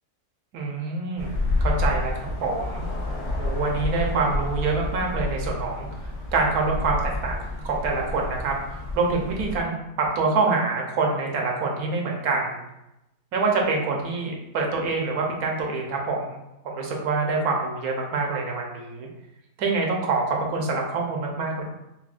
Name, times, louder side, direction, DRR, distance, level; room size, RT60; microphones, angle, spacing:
voice 1, 0.5-2.9 3.4-5.9 6.3-7.4 7.6-12.6 13.3-16.4 16.6-19.1 19.6-21.6, right 3 dB, 80° right, 0 dB, 1.2 m, -26 dB
sound 1, 1.2-9.6, left 2 dB, 90° left, 1.3 m, -29 dB
5.7 x 2.2 x 2.4 m, 0.90 s
omnidirectional pair, 1.6 m